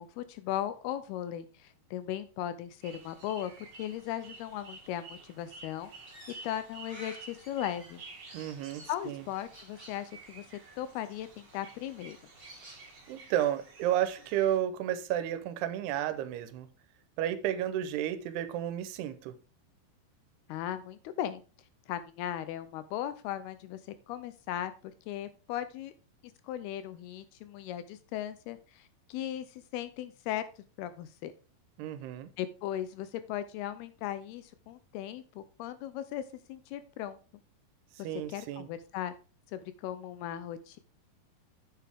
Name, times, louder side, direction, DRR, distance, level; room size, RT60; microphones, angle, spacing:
voice 1, 0.0-5.9 6.4-8.0 8.9-10.5 10.8-12.2 20.5-21.4 21.9-24.7 25.1-25.9 26.4-30.4 30.8-31.3 32.4-37.2 38.3-39.2 39.5-40.8, left 11 dB, 80° left, 2.4 m, -37 dB
sound 1, 2.8-14.6, right 3 dB, 50° right, 1.3 m, -52 dB
Crow, 5.8-13.1, right 1 dB, 10° right, 1.4 m, -54 dB
voice 2, 8.3-9.2 13.1-16.7 17.2-19.3 31.8-32.3 38.0-38.7, right 11 dB, 80° right, 2.7 m, -32 dB
8.5 x 7.6 x 3.5 m
omnidirectional pair, 5.0 m